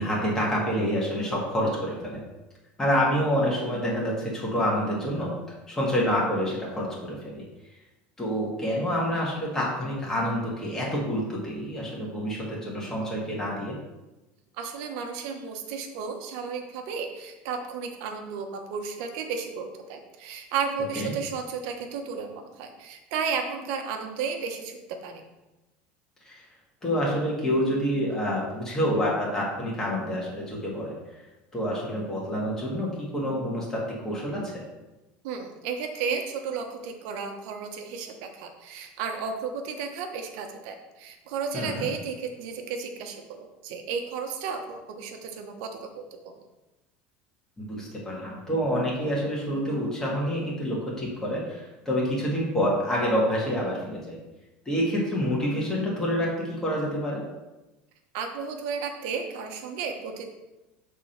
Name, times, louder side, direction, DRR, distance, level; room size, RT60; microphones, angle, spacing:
voice 1, 0.0-2.2 2.8-5.3 5.7-7.4 8.2-13.7 21.0-21.1 26.3-26.4 26.8-30.9 31.5-34.6 41.5-41.9 47.6-54.2 54.7-57.2, equal, 10° left, -4 dB, 1.8 m, -27 dB
voice 2, 14.6-25.2 35.2-46.4 58.1-60.2, right 5 dB, 70° right, 4 dB, 1.0 m, -33 dB
6.1 x 3.7 x 5.8 m, 1.0 s
cardioid pair, 150°, 4 cm